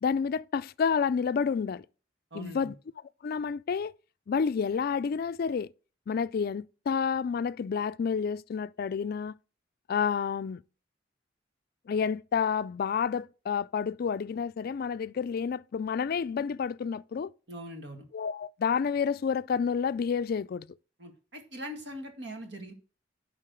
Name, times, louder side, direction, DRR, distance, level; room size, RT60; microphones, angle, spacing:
voice 1, 0.0-1.9 2.3-2.7 3.2-3.9 4.3-5.7 6.1-9.4 9.9-10.6 11.9-17.3 18.1-20.7, left 6 dB, 55° left, 0.3 m, -29 dB
voice 2, 2.3-2.7 17.5-18.0 21.0-22.7, equal, 70° right, 2.0 m, -41 dB
11.5 x 3.8 x 6.4 m
head